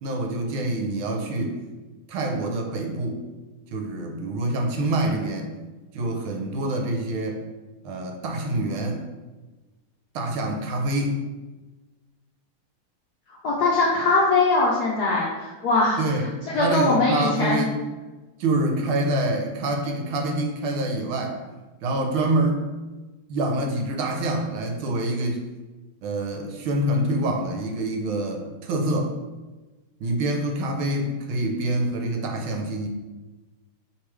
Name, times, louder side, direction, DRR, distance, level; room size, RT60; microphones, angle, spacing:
voice 1, 0.0-1.6 2.1-3.2 3.7-5.5 5.9-7.4 7.8-9.0 10.1-11.2 16.0-17.8 18.4-21.4 21.8-22.6 23.3-25.4 26.0-29.1 30.0-32.9, right 1 dB, 80° right, 2 dB, 1.5 m, -26 dB
voice 2, 13.4-16.0 16.4-17.6, left 3 dB, 70° left, -5 dB, 0.9 m, -21 dB
3.5 x 3.1 x 4.6 m, 1.2 s
omnidirectional pair, 2.4 m